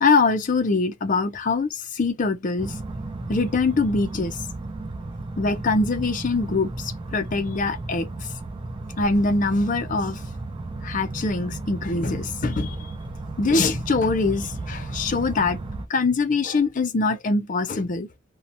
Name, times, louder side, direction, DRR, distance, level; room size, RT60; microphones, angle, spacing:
voice 1, 0.0-2.7 3.3-4.4 5.4-8.1 9.0-10.2 10.8-12.8 13.4-18.2, left 3 dB, 40° left, 0.5 m, -23 dB
sound 1, 2.6-15.9, right 2 dB, 25° right, 0.4 m, -34 dB
2.7 x 2.1 x 2.6 m
head